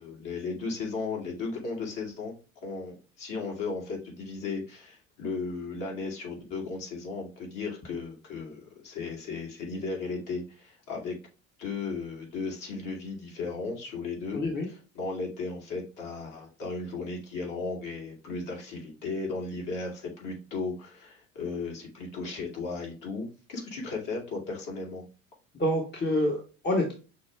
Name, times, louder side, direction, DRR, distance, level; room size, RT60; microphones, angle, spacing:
voice 1, 0.0-2.3 2.6-11.2 11.6-14.4 15.0-25.0, left 4 dB, 50° left, -1 dB, 2.3 m, -35 dB
voice 2, 14.3-14.7 25.6-26.9, left 1 dB, 25° left, 0 dB, 1.3 m, -27 dB
6.1 x 2.3 x 3.3 m, 0.33 s
hypercardioid pair, 70°, 42 cm